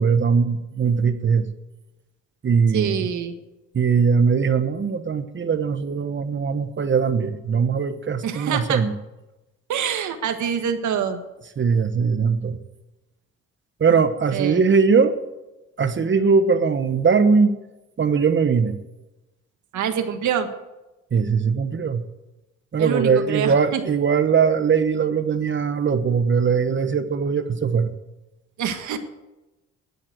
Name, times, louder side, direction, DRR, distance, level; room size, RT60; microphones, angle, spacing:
voice 1, 0.0-1.5 2.4-3.1 3.7-8.9 11.6-12.6 13.8-15.1 15.8-17.6 18.0-18.8 21.1-22.0 22.7-27.9, right 5 dB, 40° right, 10 dB, 1.2 m, -20 dB
voice 2, 2.7-3.3 8.2-8.8 9.7-11.2 14.3-14.6 19.7-20.5 22.8-23.8 28.6-29.0, right 8 dB, 75° right, 7 dB, 1.7 m, -25 dB
11.5 x 11.5 x 7.8 m, 1.0 s
cardioid pair, 90°, 30 cm